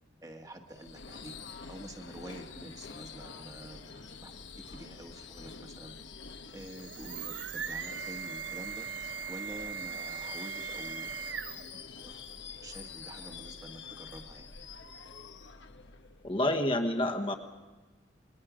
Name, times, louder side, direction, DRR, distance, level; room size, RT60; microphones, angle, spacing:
voice 1, 0.2-1.3 1.7-4.3 4.7-6.0 6.5-8.9 9.3-11.5 12.0-12.3 12.6-14.5, right 1 dB, 20° right, 4 dB, 1.5 m, -47 dB
Subway metro underground / Screech, 0.7-16.6, left 5 dB, 65° left, 1.2 m, -47 dB
sound 1, 6.5-11.8, right 7 dB, 65° right, 0.9 m, -39 dB
voice 2, 16.2-17.3, left 1 dB, 25° left, 5 dB, 1.3 m, -28 dB
27.5 x 21.5 x 5.1 m, 1.2 s
head